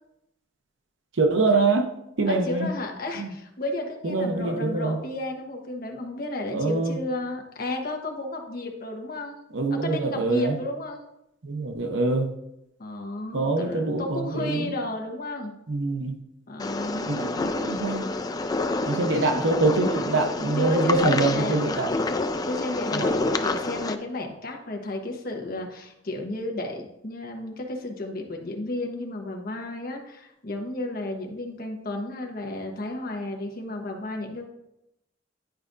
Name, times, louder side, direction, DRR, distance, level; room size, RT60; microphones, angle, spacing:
voice 1, 1.2-2.7 3.1-3.3 4.0-5.0 6.5-7.0 9.5-10.6 11.4-12.3 13.3-14.7 15.7-16.1 17.1-18.1 18.9-21.9 22.9-23.1, right 3 dB, 75° right, 4 dB, 0.8 m, -24 dB
voice 2, 2.3-9.4 9.7-11.0 12.8-15.5 16.5-17.6 18.7-18.8 19.1-19.4 20.6-21.8 22.4-34.4, left 1 dB, 50° left, 1 dB, 1.1 m, -33 dB
sound 1, 16.6-24.0, left 3 dB, 20° left, 0.3 m, -28 dB
10.5 x 4.8 x 2.6 m, 0.84 s
head